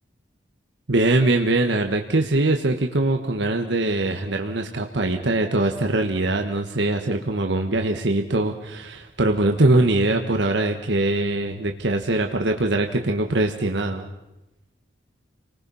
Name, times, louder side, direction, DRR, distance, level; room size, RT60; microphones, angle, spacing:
voice 1, 0.9-14.0, right 2 dB, 65° right, 4 dB, 1.4 m, -22 dB
30.0 x 20.0 x 5.6 m, 0.98 s
head